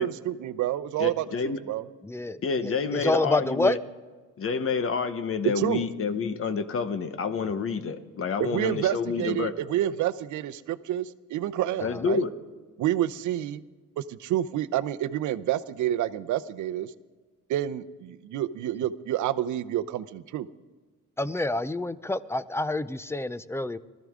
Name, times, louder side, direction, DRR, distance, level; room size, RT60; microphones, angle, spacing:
voice 1, 0.0-1.8 5.4-5.8 8.4-12.2 12.8-13.6 14.0-16.9 17.5-20.5, right 12 dB, 75° right, 14 dB, 0.7 m, -28 dB
voice 2, 1.0-1.6 2.4-3.8 4.4-9.5 11.8-12.3, left 5 dB, 45° left, 10 dB, 1.1 m, -28 dB
voice 3, 2.0-3.8 7.4-7.5 21.2-23.8, left 2 dB, 10° left, 15 dB, 0.5 m, -28 dB
20.0 x 14.0 x 3.7 m, 1.4 s
cardioid pair, 90°, 30 cm